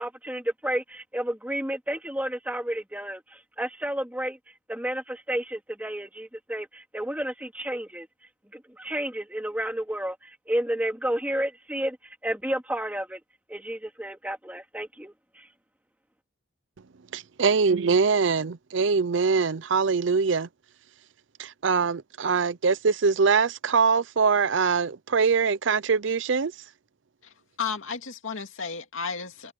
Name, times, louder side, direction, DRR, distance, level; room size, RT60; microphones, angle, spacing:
voice 1, 0.0-4.4 4.7-8.1 8.5-12.0 12.2-13.2 13.5-15.5, right 1 dB, 10° right, 2.8 m, -31 dB
voice 2, 17.1-20.5 21.4-26.5, right 5 dB, 65° right, 0.6 m, -23 dB
voice 3, 27.6-29.5, left 5 dB, 80° left, 2.3 m, -33 dB
head